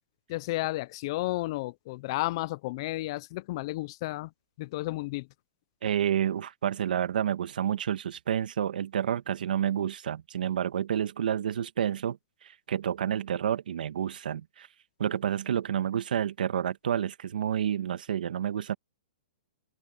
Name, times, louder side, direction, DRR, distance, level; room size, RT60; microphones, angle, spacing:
voice 1, 0.3-4.3 4.6-5.3, left 19 dB, 30° left, 0.4 m, -32 dB
voice 2, 5.8-14.7 15.0-18.7, right 9 dB, 70° right, 1.8 m, -29 dB
hypercardioid pair, 170°, 5 cm